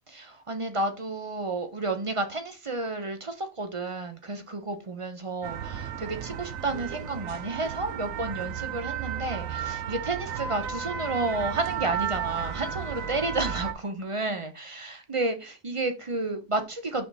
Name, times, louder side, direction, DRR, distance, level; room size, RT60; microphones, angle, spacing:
voice 1, 0.1-17.1, right 2 dB, 35° right, 0.6 m, -31 dB
sound 1, 5.4-13.7, right 8 dB, 85° right, 1.1 m, -33 dB
6.2 x 4.6 x 4.0 m
omnidirectional pair, 1.4 m